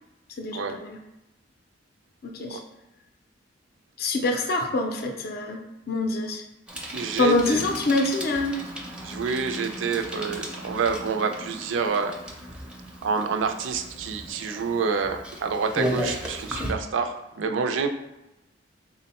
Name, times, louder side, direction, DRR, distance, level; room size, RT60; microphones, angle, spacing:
voice 1, 0.4-1.0 2.2-2.6 4.0-5.6 5.9-6.4 7.2-8.6, left 2 dB, 55° left, 3 dB, 0.4 m, -25 dB
Bicycle, 6.7-16.7, equal, 5° right, 0.4 m, -35 dB
voice 2, 6.9-7.6 9.0-12.2 13.0-17.9, right 5 dB, 85° right, 7 dB, 0.4 m, -27 dB
3.4 x 2.1 x 4.1 m, 0.95 s
head